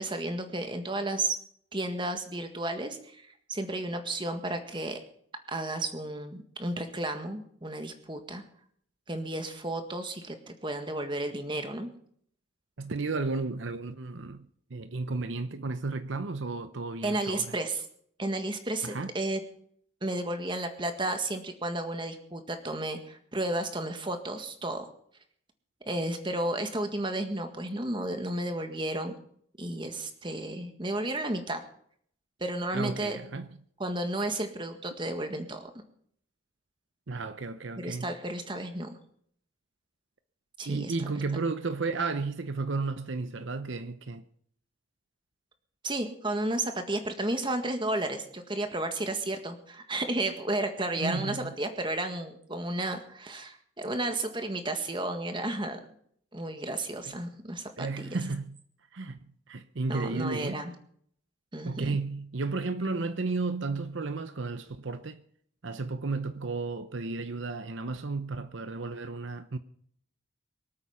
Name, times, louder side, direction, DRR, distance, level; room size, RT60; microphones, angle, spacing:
voice 1, 0.0-1.3 1.7-5.0 5.5-8.4 9.1-11.9 17.0-17.8 18.2-19.4 20.0-24.8 25.8-29.1 29.6-31.6 32.4-33.2 33.8-35.7 37.8-38.9 40.6-40.9 45.8-55.8 56.3-58.2 59.9-60.7 61.5-62.0, right 2 dB, 25° right, 1.7 m, -32 dB
voice 2, 12.8-17.6 18.8-19.1 32.7-33.5 37.1-38.1 40.7-44.2 51.0-51.5 57.1-57.2 57.8-58.6 58.9-59.2 59.5-60.6 61.6-65.2 65.6-69.6, right 3 dB, 65° right, 0.8 m, -33 dB
24.0 x 8.6 x 5.7 m
head